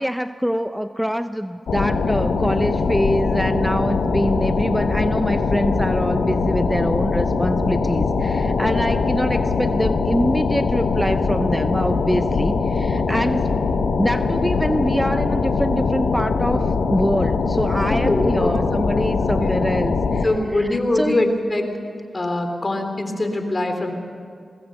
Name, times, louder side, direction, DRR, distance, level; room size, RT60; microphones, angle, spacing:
voice 1, 0.0-13.5 14.0-21.3, equal, 5° right, 10 dB, 0.7 m, -24 dB
sound 1, 1.7-20.3, left 4 dB, 85° left, 1.3 m, -22 dB
voice 2, 17.9-18.5 19.2-19.5 20.2-21.7 22.1-23.9, left 2 dB, 40° left, 5 dB, 3.6 m, -23 dB
23.0 x 19.5 x 6.7 m, 2.3 s
cardioid pair, 45°, 0 cm